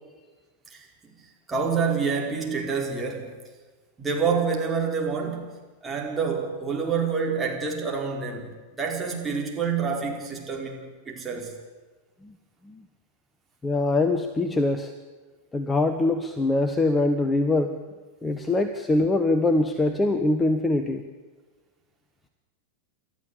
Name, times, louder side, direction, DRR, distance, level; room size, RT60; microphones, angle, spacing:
voice 1, 1.2-3.3 4.0-5.5 5.8-8.5 8.8-11.6, right 5 dB, 15° right, 0 dB, 5.2 m, -27 dB
voice 2, 13.6-14.9 15.5-17.8 18.2-21.1, left 2 dB, 15° left, 8 dB, 1.4 m, -23 dB
29.5 x 13.5 x 8.7 m, 1.3 s
figure-of-eight pair, 90°, 0 cm